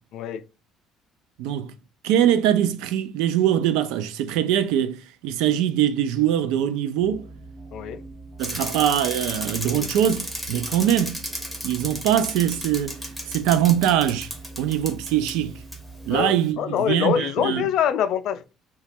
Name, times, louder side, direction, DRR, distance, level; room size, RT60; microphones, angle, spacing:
voice 1, 0.1-0.4 7.7-8.0 16.1-18.5, left 9 dB, 60° left, 0.3 m, -24 dB
voice 2, 1.4-1.7 2.0-7.3 8.4-11.2 11.6-13.0 13.3-14.3 14.6-15.5 16.1-17.7, right 10 dB, 85° right, 0.4 m, -22 dB
sound 1, 7.0-16.2, right 3 dB, 55° right, 1.0 m, -42 dB
Bicycle, 8.4-15.3 15.7-15.8, equal, 5° right, 0.9 m, -33 dB
2.9 x 2.3 x 4.2 m
cardioid pair, 125°, 0 cm